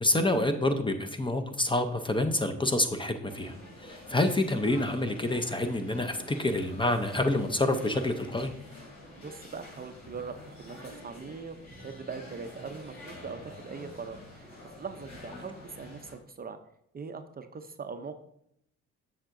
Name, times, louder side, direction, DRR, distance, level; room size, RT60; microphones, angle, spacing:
voice 1, 0.0-3.5 3.8-8.5, left 1 dB, 15° left, 7 dB, 0.6 m, -27 dB
sound 1, 3.3-16.1, left 1 dB, 60° left, 2.7 m, -47 dB
voice 2, 9.1-11.6 11.8-16.6 16.9-18.2, right 5 dB, 30° right, 8 dB, 0.5 m, -41 dB
7.3 x 6.5 x 2.6 m, 0.75 s
cardioid pair, 90°, 30 cm